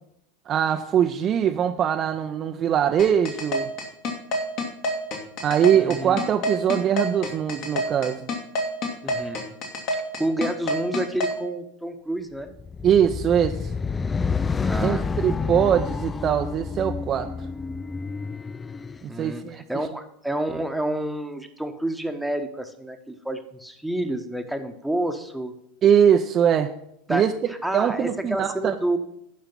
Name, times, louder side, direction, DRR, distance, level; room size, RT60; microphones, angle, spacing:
voice 1, 0.5-3.7 5.4-8.3 12.8-13.7 14.8-17.3 19.0-19.6 25.8-26.7 27.1-27.3 27.7-28.7, right 9 dB, 35° right, 6 dB, 0.5 m, -22 dB
sound 1, 3.0-11.3, left 1 dB, 50° left, 1.9 m, -27 dB
voice 2, 5.7-6.2 9.0-9.5 10.2-12.5 14.6-15.1 19.1-25.5 27.1-27.3 27.6-29.0, right 1 dB, ahead, 6 dB, 1.1 m, -29 dB
sound 2, 12.5-19.0, left 5 dB, 20° left, 0.3 m, -29 dB
10.5 x 5.7 x 5.8 m, 0.75 s
figure-of-eight pair, 80°, 0 cm